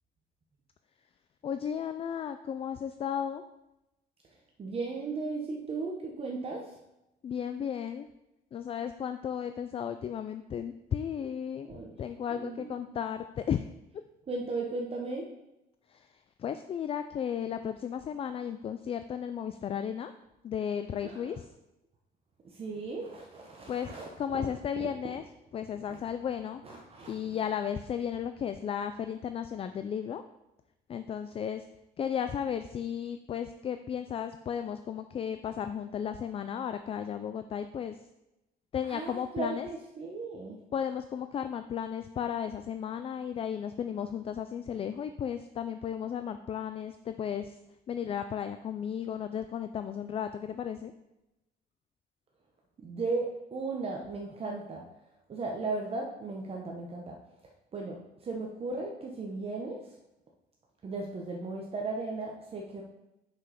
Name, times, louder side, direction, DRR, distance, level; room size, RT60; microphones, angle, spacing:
voice 1, 1.4-3.4 7.2-8.1 8.5-11.7 12.0-13.7 15.9-20.1 20.4-21.5 23.7-25.2 25.5-26.6 27.1-30.2 30.9-31.7 32.0-38.0 38.7-39.7 40.7-47.6 47.9-50.9, left 8 dB, 35° left, 9 dB, 0.4 m, -34 dB
voice 2, 4.3-6.8 11.7-12.0 12.3-12.7 14.3-15.3 21.0-21.3 22.4-24.5 25.9-26.1 26.6-27.4 38.9-40.6 52.8-54.8 55.3-57.2 57.7-59.9 60.8-62.8, right 3 dB, 35° right, 0 dB, 1.0 m, -36 dB
6.1 x 5.4 x 5.1 m, 0.93 s
cardioid pair, 110°, 17 cm